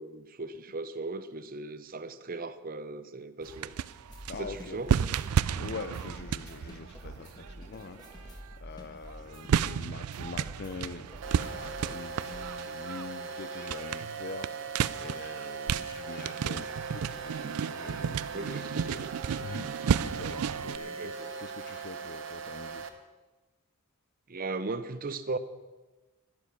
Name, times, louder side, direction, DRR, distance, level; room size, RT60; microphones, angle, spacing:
voice 1, 0.0-3.7 4.4-4.9 9.5-9.8 18.3-19.2 20.8-21.3 24.3-25.4, right 3 dB, 40° right, 12 dB, 0.7 m, -38 dB
sound 1, 3.4-8.6 9.1-20.8, right 7 dB, 80° right, 0.4 m, -33 dB
sound 2, 4.1-12.4, equal, 20° left, 1.5 m, -48 dB
voice 2, 4.3-4.8 5.6-14.5 15.0-16.7 16.9-19.1 19.4-22.8, left 4 dB, 45° left, 10 dB, 0.5 m, -44 dB
sound 3, 11.2-22.9, right 5 dB, 60° right, 1.1 m, -40 dB
12.0 x 11.0 x 6.0 m, 1.2 s
head